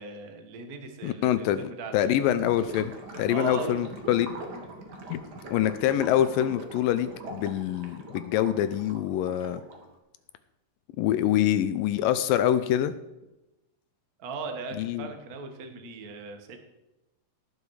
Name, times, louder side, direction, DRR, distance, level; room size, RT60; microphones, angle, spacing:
voice 1, 0.0-2.0 3.3-3.8 14.2-16.6, right 4 dB, 75° right, 5 dB, 0.8 m, -38 dB
voice 2, 1.0-4.3 5.1-5.2 5.5-9.6 11.0-12.9 14.8-15.0, left 11 dB, 80° left, 13 dB, 2.2 m, -25 dB
Gurgling / Liquid, 2.2-9.9, right 2 dB, 45° right, 1.4 m, -42 dB
17.5 x 7.2 x 4.8 m, 0.95 s
omnidirectional pair, 4.2 m